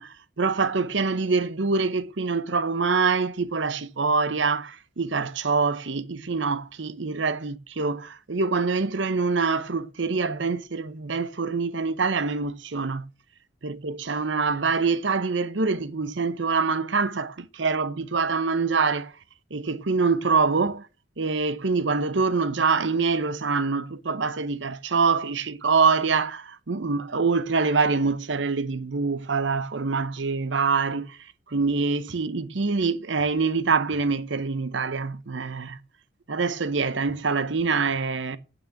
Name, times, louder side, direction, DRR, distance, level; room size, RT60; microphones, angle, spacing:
voice 1, 0.0-13.0 13.6-19.1 19.5-20.9 21.2-31.2 31.5-35.8 36.3-38.4, right 4 dB, 65° right, 0.8 m, -25 dB
8.9 x 6.2 x 7.6 m
head